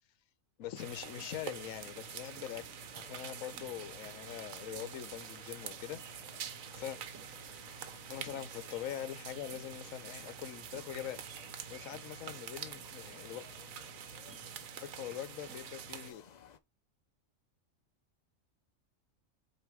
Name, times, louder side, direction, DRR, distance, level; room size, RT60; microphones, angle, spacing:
voice 1, 0.6-2.7 2.9-7.0 8.1-13.5 14.8-16.2, left 11 dB, 75° left, 1.1 m, -43 dB
sound 1, 0.6-16.6, left 7 dB, 55° left, 0.4 m, -58 dB
sound 2, 0.8-16.1, right 8 dB, 75° right, 1.2 m, -46 dB
7.7 x 3.0 x 4.8 m
omnidirectional pair, 1.4 m